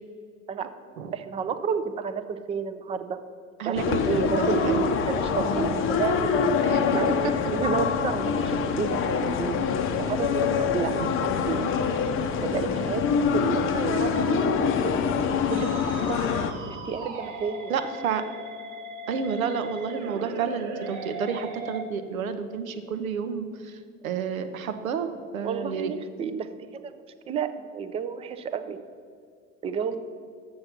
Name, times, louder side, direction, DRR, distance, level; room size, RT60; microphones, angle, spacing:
voice 1, 1.1-3.2 3.7-7.1 7.5-9.6 10.0-10.9 11.5-11.6 12.4-14.7 15.5-15.8 16.1-17.7 25.4-26.9 27.3-28.8 29.6-30.0, right 6 dB, 15° right, 10 dB, 0.4 m, -30 dB
sound 1, 3.8-16.5, left 6 dB, 30° left, 0.6 m, -25 dB
voice 2, 4.1-4.9 6.6-6.8 7.2-7.3 10.9-11.1 17.7-18.2 19.1-23.8 24.0-25.9, right 6 dB, 80° right, 9 dB, 0.8 m, -30 dB
Musical instrument, 15.5-21.8, right 2 dB, 50° right, 1.2 m, -38 dB
7.0 x 6.5 x 5.7 m, 2.2 s
hypercardioid pair, 75°, 40 cm